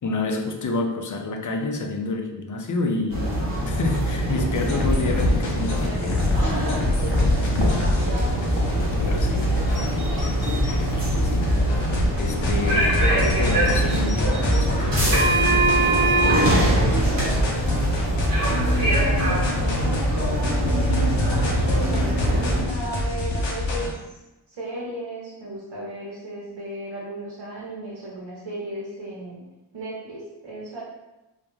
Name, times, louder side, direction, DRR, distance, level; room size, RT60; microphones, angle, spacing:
voice 1, 0.0-3.4 3.6-6.9 7.4-7.9 9.0-9.6 10.9-11.6 12.2-16.2, left 3 dB, 45° left, 3 dB, 0.4 m, -29 dB
sound 1, 3.1-22.6, right 1 dB, 45° right, 1.0 m, -23 dB
sound 2, 4.6-23.9, left 2 dB, 90° left, 0.6 m, -26 dB
sound 3, 9.6-10.8 11.5-11.6 13.0-14.7, equal, 15° right, 0.6 m, -40 dB
voice 2, 18.5-24.2 24.5-29.4 29.7-30.8, right 1 dB, 75° right, -6 dB, 0.7 m, -35 dB
2.3 x 2.1 x 3.0 m, 0.98 s
cardioid pair, 40°, 44 cm